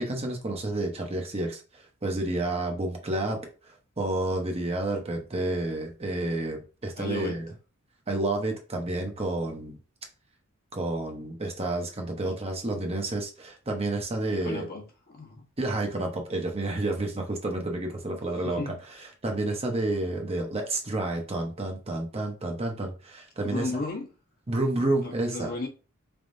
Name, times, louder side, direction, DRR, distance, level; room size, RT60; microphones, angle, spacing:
voice 1, 0.0-7.5 8.1-9.8 10.7-14.6 15.6-23.7 24.5-25.5, right 2 dB, 30° right, 2 dB, 0.8 m, -30 dB
voice 2, 7.0-7.4 12.3-12.4 14.3-14.8 15.1-15.5 18.4-18.7 23.4-24.1 25.0-25.7, left 3 dB, 45° left, 1 dB, 1.1 m, -34 dB
4.1 x 3.5 x 2.6 m, 0.33 s
head